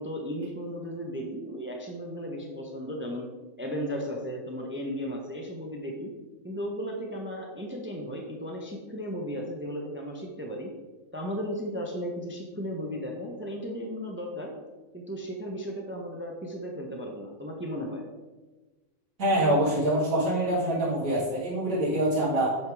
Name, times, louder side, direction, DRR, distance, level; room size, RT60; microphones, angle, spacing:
voice 1, 0.0-3.3 3.6-6.1 6.4-10.7 11.1-14.5 14.9-18.0, equal, 10° right, 1 dB, 0.6 m, -35 dB
voice 2, 19.2-22.6, right 1 dB, 70° right, -9 dB, 2.3 m, -25 dB
7.9 x 3.5 x 4.7 m, 1.2 s
omnidirectional pair, 1.4 m